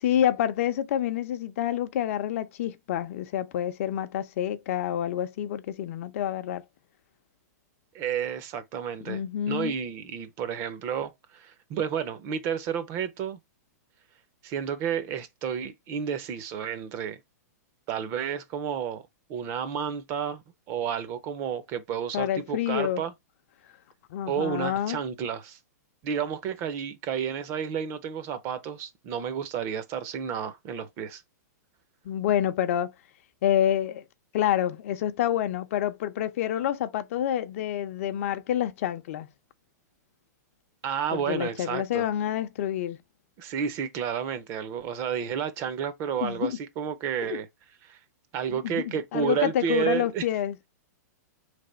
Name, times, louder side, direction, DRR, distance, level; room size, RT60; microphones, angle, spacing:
voice 1, 0.0-6.6 9.1-9.7 22.1-23.0 24.1-25.0 32.0-32.9 33.4-34.0 34.3-39.3 41.1-43.0 46.2-46.6 47.2-47.4 48.5-50.6, left 11 dB, 50° left, 0.6 m, -28 dB
voice 2, 7.9-13.4 14.4-17.2 17.9-19.0 19.3-20.4 20.7-23.1 24.3-25.6 26.0-31.2 40.8-42.1 43.4-47.5 47.8-48.0 48.3-50.2, right 8 dB, 30° right, 0.6 m, -31 dB
3.9 x 3.4 x 3.9 m
hypercardioid pair, 155°, 9 cm